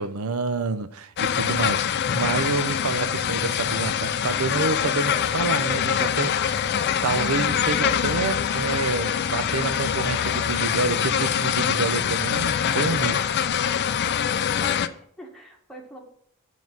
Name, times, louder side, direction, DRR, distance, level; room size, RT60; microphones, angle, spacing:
voice 1, 0.0-6.6 7.0-13.3, right 4 dB, 75° right, 0.6 m, -28 dB
sound 1, 1.2-14.9, left 8 dB, 50° left, 0.4 m, -24 dB
voice 2, 14.6-16.0, right 1 dB, ahead, 1.5 m, -44 dB
7.2 x 4.0 x 5.9 m
head